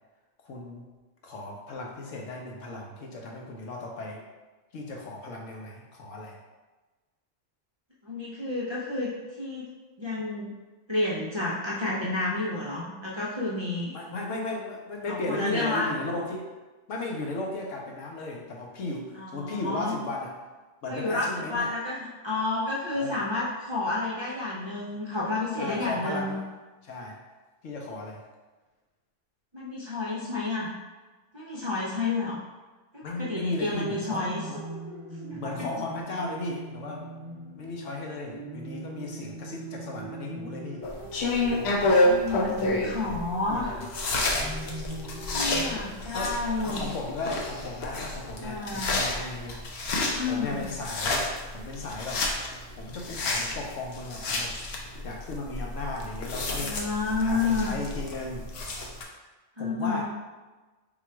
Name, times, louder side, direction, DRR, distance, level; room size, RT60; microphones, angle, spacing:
voice 1, 0.4-0.9 1.2-4.2 4.7-6.4 13.9-16.4 16.9-20.3 20.8-21.7 22.9-23.3 25.6-26.4 26.8-27.2 27.6-28.2 33.0-34.2 34.5-34.6 35.4-37.0 37.6-40.9 43.0-43.2 43.5-43.8 46.1-49.6 50.2-52.3 52.8-54.6 55.0-56.8 57.2-58.7 59.6-60.0, left 2 dB, 80° left, 0 dB, 1.1 m, -35 dB
voice 2, 8.0-9.7 10.0-10.5 10.9-14.0 15.1-16.0 19.1-20.0 20.9-26.4 29.5-30.7 31.3-32.4 32.9-34.5 35.3-35.5 42.0-43.9 45.3-46.9 48.4-49.0 50.1-50.7 56.6-57.8 59.6-60.0, left 3 dB, 35° right, -8 dB, 0.4 m, -30 dB
sound 1, 33.7-45.7, right 1 dB, 55° right, 0.8 m, -41 dB
sound 2, 40.8-59.0, left 2 dB, 65° left, 0.8 m, -29 dB
3.8 x 2.4 x 4.4 m, 1.2 s
omnidirectional pair, 1.3 m